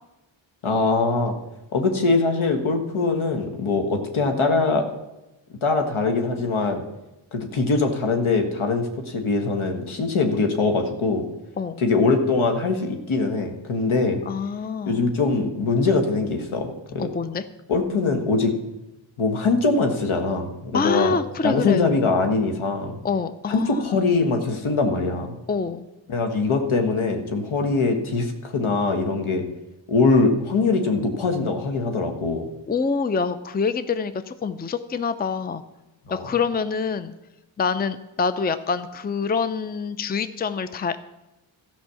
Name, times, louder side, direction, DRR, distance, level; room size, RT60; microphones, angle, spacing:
voice 1, 0.6-1.4 1.7-4.8 5.6-6.8 7.3-11.3 11.8-14.2 14.9-17.1 17.7-18.5 19.2-21.1 21.4-22.9 23.5-25.3 26.1-29.4 29.9-32.5 36.1-36.2, left 3 dB, 75° left, 5 dB, 1.6 m, -22 dB
voice 2, 14.3-15.0 17.0-17.4 20.7-21.9 23.0-24.1 25.5-25.9 32.7-35.6 36.1-37.1 37.6-41.0, left 5 dB, 20° left, 12 dB, 0.5 m, -26 dB
13.0 x 5.6 x 7.0 m, 0.97 s
cardioid pair, 60°, 49 cm